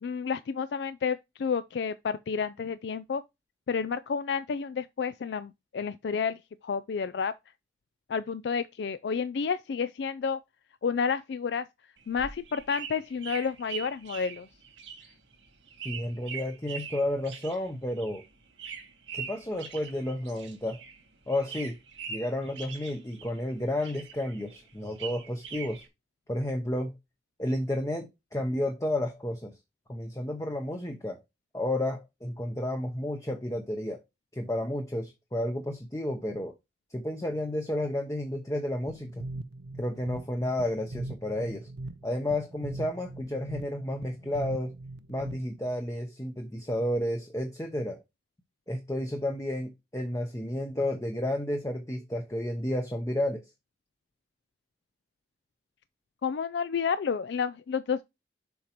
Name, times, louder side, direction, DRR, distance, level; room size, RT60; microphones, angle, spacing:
voice 1, 0.0-3.2 3.7-6.4 6.6-7.3 8.1-10.4 10.8-11.7 12.1-14.5 56.2-58.0, left 6 dB, 70° left, 0.4 m, -30 dB
sound 1, 12.0-21.0 21.3-23.5 23.8-25.9, right 6 dB, 85° right, 2.3 m, -42 dB
voice 2, 15.8-18.2 19.1-20.8 21.3-21.8 22.1-25.8 26.3-26.9 27.4-29.5 29.9-31.2 31.5-34.0 34.3-36.6 36.9-39.2 39.8-41.7 42.0-44.7 45.1-48.0 48.7-53.4, left 1 dB, 15° left, 0.7 m, -31 dB
sound 2, 38.9-45.7, right 2 dB, 65° right, 0.5 m, -40 dB
7.1 x 5.0 x 2.9 m
head